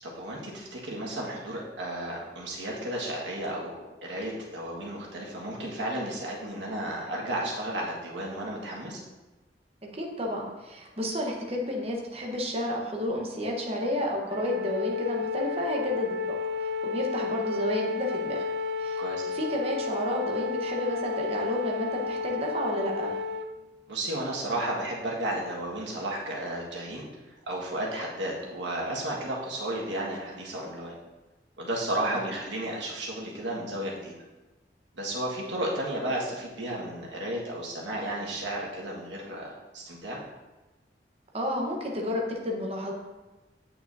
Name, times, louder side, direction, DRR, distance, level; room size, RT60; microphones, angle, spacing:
voice 1, 0.0-9.0 19.0-19.3 23.9-27.0 27.5-31.0 31.6-34.1 34.9-40.2, right 1 dB, 85° right, -3 dB, 1.6 m, -33 dB
voice 2, 9.8-18.5 18.8-19.0 19.3-23.1 32.0-32.2 41.3-42.9, left 1 dB, 35° right, 0 dB, 1.0 m, -31 dB
Wind instrument woodwind instrument, 14.3-23.5, left 4 dB, 65° right, 0.4 m, -32 dB
8.9 x 5.9 x 2.7 m, 1.1 s
head